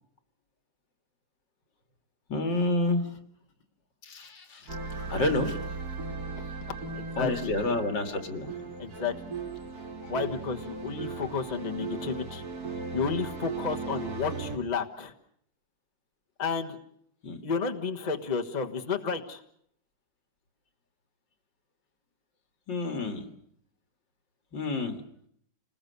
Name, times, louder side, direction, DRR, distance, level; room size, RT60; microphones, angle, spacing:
voice 1, 2.3-3.1 4.0-5.6 7.2-8.5 10.0-10.1 17.2-17.4 22.7-23.3 24.5-25.0, left 2 dB, 80° left, 6 dB, 2.8 m, -29 dB
sound 1, 4.7-14.6, right 4 dB, 55° right, 2.5 m, -37 dB
voice 2, 6.9-7.6 8.8-9.1 10.1-15.1 16.4-16.8 17.4-19.4, left 5 dB, 25° left, 4 dB, 1.4 m, -32 dB
29.5 x 20.0 x 6.9 m, 0.68 s
omnidirectional pair, 2.0 m